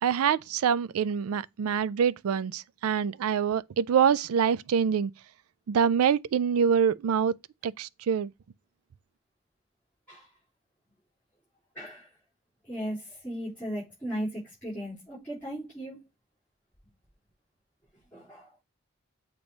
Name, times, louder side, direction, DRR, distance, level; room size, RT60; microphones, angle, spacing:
voice 1, 0.0-5.1 5.7-7.3 7.6-8.3, right 7 dB, 85° right, 0.4 m, -25 dB
voice 2, 11.7-12.1 12.6-16.0 18.1-18.5, equal, 10° left, 3.9 m, -36 dB
7.1 x 3.0 x 5.0 m
head